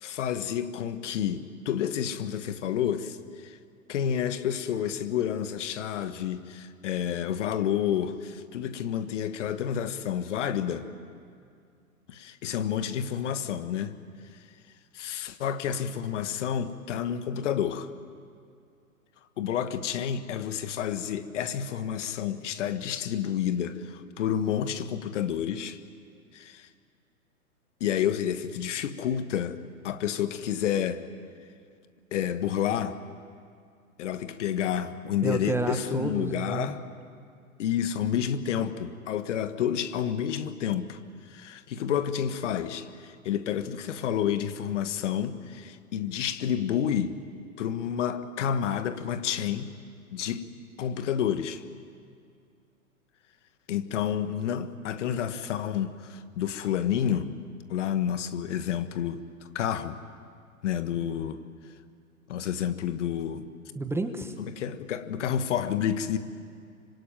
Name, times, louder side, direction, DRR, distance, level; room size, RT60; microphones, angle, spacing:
voice 1, 0.0-3.6 3.9-10.9 12.1-13.9 14.9-17.9 19.4-25.8 26.3-26.7 27.8-29.6 29.8-31.0 32.1-33.0 34.0-36.8 37.6-41.0 41.3-47.2 47.6-49.7 50.1-50.5 50.8-51.6 53.7-57.3 57.7-59.2 59.6-60.0 60.6-61.4 62.3-63.5 64.5-66.2, left 9 dB, 55° left, 11 dB, 1.6 m, -29 dB
voice 2, 35.2-36.8 63.7-64.4, right 3 dB, 5° right, 7 dB, 1.3 m, -30 dB
26.0 x 24.5 x 9.2 m, 2.3 s
hypercardioid pair, 115°, 43 cm